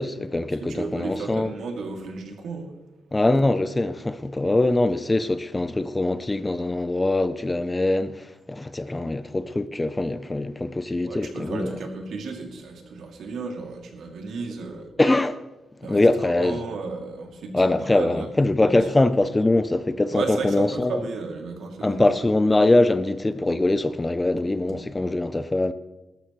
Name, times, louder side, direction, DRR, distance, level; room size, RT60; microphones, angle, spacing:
voice 1, 0.0-1.5 3.1-11.7 15.0-15.4 15.9-16.6 17.5-21.1 21.8-25.7, left 2 dB, 15° left, 0.5 m, -23 dB
voice 2, 0.6-2.7 11.1-14.9 15.8-18.8 20.1-22.5 24.7-24.8, right 3 dB, 80° right, 2.6 m, -34 dB
19.0 x 13.0 x 3.1 m
wide cardioid pair, 160°, 0 cm